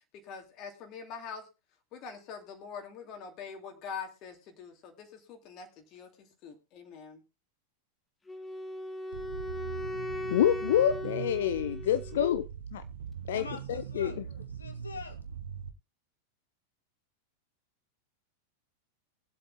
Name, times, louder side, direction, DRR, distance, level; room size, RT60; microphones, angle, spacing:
voice 1, 0.1-1.5 1.9-7.2, left 6 dB, 35° left, 2.5 m, -44 dB
Wind instrument woodwind instrument, 8.3-12.4, left 1 dB, 10° left, 1.1 m, -38 dB
sound 1, 9.1-15.7, right 7 dB, 65° right, 1.0 m, -41 dB
voice 2, 10.3-12.8 13.3-14.2, left 10 dB, 60° left, 0.6 m, -28 dB
voice 3, 13.3-14.2 14.6-15.2, left 3 dB, 75° left, 2.2 m, -43 dB
22.5 x 7.8 x 2.4 m
figure-of-eight pair, 90°, 0 cm